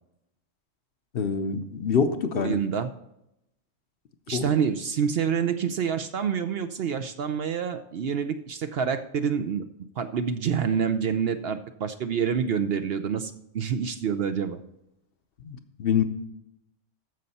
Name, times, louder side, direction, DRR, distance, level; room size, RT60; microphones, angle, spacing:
voice 1, 1.1-2.6 4.3-4.5 15.4-16.0, left 6 dB, 55° left, 8 dB, 0.8 m, -25 dB
voice 2, 2.3-2.9 4.3-9.6 10.0-14.6, right 7 dB, 60° right, 9 dB, 0.7 m, -27 dB
14.0 x 5.5 x 4.1 m, 0.81 s
omnidirectional pair, 1.3 m